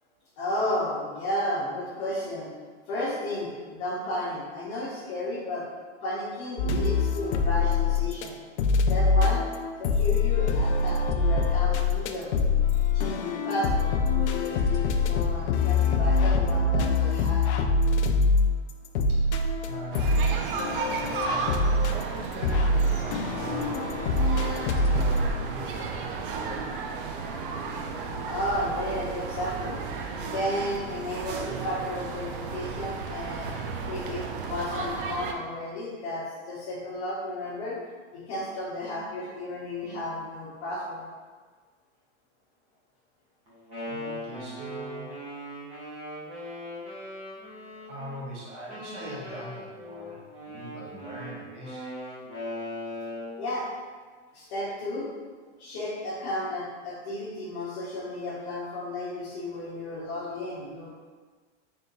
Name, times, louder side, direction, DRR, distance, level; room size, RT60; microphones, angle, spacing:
voice 1, 0.4-2.5 2.9-5.7 6.0-8.4 8.9-9.4 9.8-12.5 12.9-17.4 28.3-29.8 30.2-33.5 33.9-37.8 38.1-41.1 53.4-53.7 54.3-55.1 55.6-61.0, left 1 dB, 40° left, -9 dB, 1.0 m, -33 dB
sound 1, 6.6-8.3 8.6-25.3, left 3 dB, 70° left, 0.5 m, -24 dB
voice 2, 19.6-24.2 24.9-26.7 27.0-27.2 43.8-45.2 47.3-47.4 47.8-51.9, right 1 dB, 80° right, -6 dB, 1.5 m, -41 dB
sound 2, 19.9-35.3, right 5 dB, 50° right, 0.4 m, -34 dB
Wind instrument woodwind instrument, 43.5-48.2 48.7-53.4, left 1 dB, 15° right, 0.9 m, -39 dB
3.6 x 2.8 x 3.9 m, 1.4 s
supercardioid pair, 170°, 36 cm